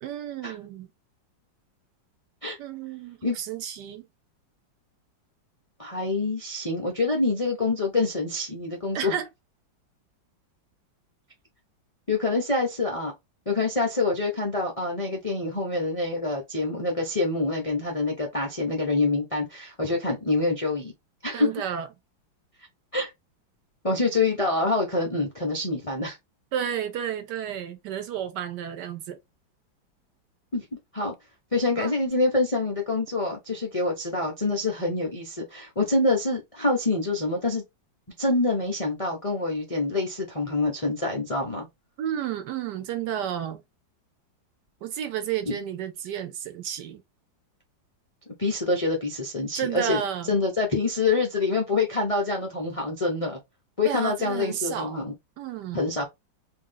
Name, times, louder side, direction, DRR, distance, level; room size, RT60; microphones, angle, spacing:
voice 1, 0.0-0.9 2.6-4.1 8.9-9.3 21.3-21.9 26.5-29.2 31.8-31.9 42.0-43.6 44.8-47.0 49.6-50.4 53.8-55.0 55.4-55.9, right 9 dB, 70° right, 1.2 m, -32 dB
voice 2, 5.8-9.1 12.1-13.1 13.5-20.9 21.2-21.5 22.9-23.1 23.8-26.2 30.5-30.7 30.9-31.1 31.5-37.6 38.2-41.7 45.5-45.6 48.4-50.0 50.3-53.4 53.8-55.1 55.7-56.1, left 3 dB, 60° left, 0.3 m, -26 dB
3.0 x 2.7 x 3.8 m
omnidirectional pair, 2.1 m